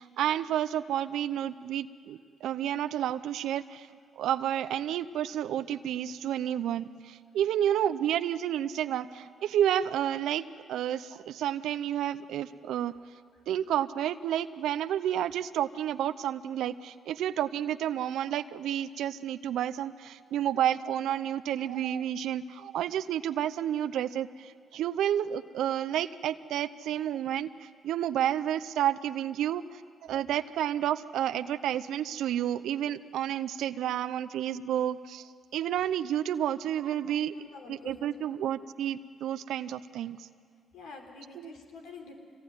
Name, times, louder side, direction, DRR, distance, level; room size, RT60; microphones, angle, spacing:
voice 1, 0.0-3.9 4.2-10.4 10.7-12.9 13.5-29.6 30.0-35.2 35.5-37.3 37.7-40.2 41.4-41.5, right 10 dB, 80° right, 13 dB, 0.7 m, -30 dB
voice 2, 37.1-38.3 40.7-42.1, left 4 dB, 85° left, 2 dB, 4.0 m, -47 dB
26.0 x 20.0 x 9.6 m, 2.2 s
supercardioid pair, 60°, 0 cm